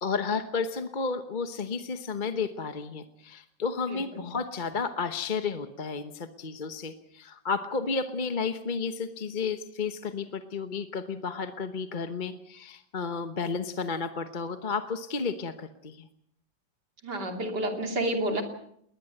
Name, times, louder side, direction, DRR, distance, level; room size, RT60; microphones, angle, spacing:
voice 1, 0.0-16.1, left 5 dB, 35° left, 10 dB, 0.9 m, -32 dB
voice 2, 3.9-4.3 17.0-18.4, right 1 dB, 60° right, 5 dB, 3.6 m, -30 dB
20.5 x 20.0 x 7.8 m, 0.70 s
omnidirectional pair, 2.0 m